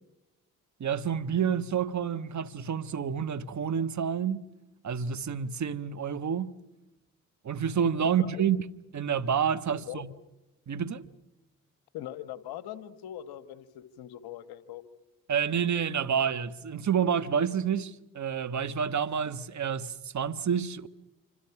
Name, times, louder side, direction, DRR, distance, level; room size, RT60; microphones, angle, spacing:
voice 1, 0.8-4.4 4.8-6.5 7.4-8.6 8.9-10.1 10.7-11.0 15.3-20.9, right 7 dB, 50° right, 1.3 m, -29 dB
voice 2, 8.2-8.5 9.7-10.1 11.9-14.8, left 12 dB, 80° left, 1.5 m, -41 dB
27.0 x 26.0 x 6.0 m
hypercardioid pair, 40°, 37 cm